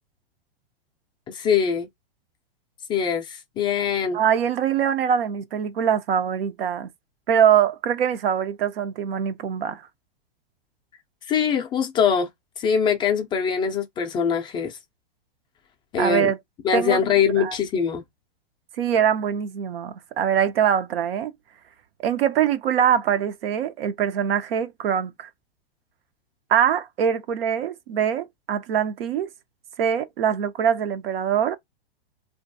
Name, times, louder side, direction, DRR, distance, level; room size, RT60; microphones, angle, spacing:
voice 1, 1.3-1.9 2.9-4.2 11.3-12.3 12.6-14.8 15.9-16.3 16.6-18.0, left 7 dB, 15° left, 0.3 m, -23 dB
voice 2, 4.1-6.9 7.3-9.8 16.0-16.4 16.7-17.0 17.4-17.6 18.8-21.3 22.0-25.3 26.5-29.3 29.8-31.6, right 8 dB, 70° right, 0.6 m, -23 dB
2.5 x 2.2 x 2.6 m
hypercardioid pair, 130°, 30 cm